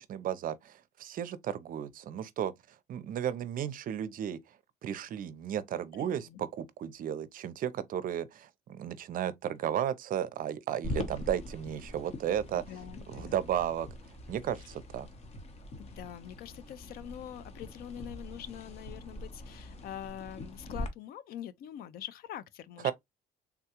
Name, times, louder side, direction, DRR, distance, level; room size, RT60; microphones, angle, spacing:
voice 1, 0.0-2.5 2.9-4.4 4.8-12.6 13.1-13.9 14.3-15.1 22.8-22.9, right 10 dB, 55° right, 0.5 m, -34 dB
voice 2, 6.0-6.4 12.5-13.3 15.8-22.9, left 11 dB, 65° left, 0.4 m, -44 dB
sound 1, 10.8-20.9, left 1 dB, 40° left, 0.9 m, -43 dB
3.6 x 2.3 x 2.9 m
cardioid pair, 110°, 17 cm